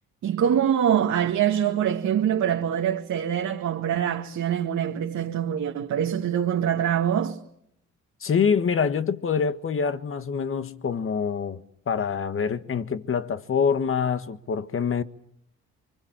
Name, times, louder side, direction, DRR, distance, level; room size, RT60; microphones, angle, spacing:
voice 1, 0.2-7.4, right 9 dB, 70° right, 2.0 m, -24 dB
voice 2, 8.2-15.0, left 6 dB, 45° left, 1.6 m, -25 dB
28.5 x 24.5 x 7.5 m
cardioid pair, 90°, 30 cm